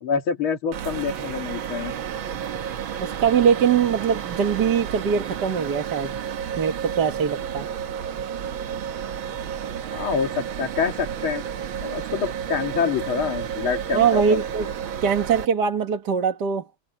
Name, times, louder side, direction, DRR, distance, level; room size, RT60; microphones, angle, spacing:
voice 1, 0.0-1.9 9.9-11.4 11.8-14.4, left 6 dB, 90° left, 2.9 m, -26 dB
sound 1, 0.7-15.5, right 8 dB, 75° right, 2.0 m, -31 dB
voice 2, 3.0-6.2 6.6-7.7 13.9-14.7 15.0-16.6, right 7 dB, 55° right, 2.0 m, -22 dB
omnidirectional pair, 2.2 m